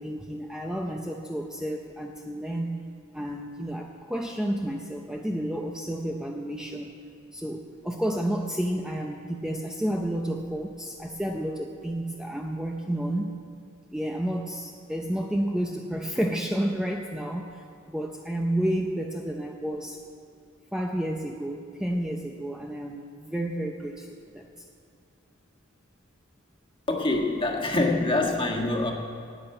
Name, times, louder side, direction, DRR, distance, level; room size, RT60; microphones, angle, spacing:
voice 1, 0.0-2.8 3.1-6.9 7.3-13.4 13.9-20.0 20.7-24.5, right 1 dB, 5° right, 1 dB, 0.6 m, -31 dB
voice 2, 26.9-28.9, left 2 dB, 25° left, 1 dB, 1.6 m, -25 dB
11.0 x 9.0 x 8.8 m, 2.4 s
head